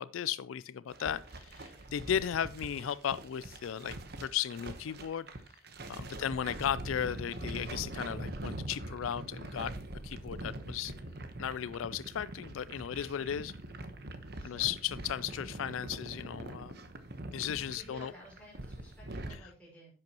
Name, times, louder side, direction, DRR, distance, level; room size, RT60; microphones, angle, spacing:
voice 1, 0.0-5.3 5.9-9.7 10.0-10.9 11.4-13.5 14.4-16.8 17.3-18.1, left 9 dB, 80° left, 17 dB, 0.4 m, -35 dB
sound 1, 0.9-19.4, right 1 dB, 50° right, 1.1 m, -43 dB
voice 2, 14.4-14.8 17.7-19.9, equal, 5° left, -5 dB, 5.6 m, -54 dB
10.5 x 7.8 x 2.9 m, 0.40 s
head